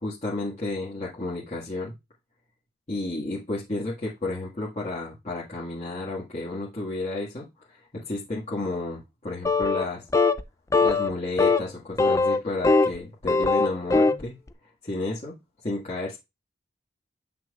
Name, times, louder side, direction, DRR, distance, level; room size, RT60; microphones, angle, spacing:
voice 1, 0.0-1.9 2.9-10.0 10.8-14.3 14.8-15.3 15.6-16.2, left 2 dB, 35° left, -6 dB, 1.7 m, -32 dB
sound 1, 9.4-9.9 10.1-10.4 10.7-11.1 11.4-11.6 12.0-13.0 13.2-14.2, left 3 dB, 15° left, 0.3 m, -21 dB
8.3 x 5.9 x 2.4 m, 0.23 s
head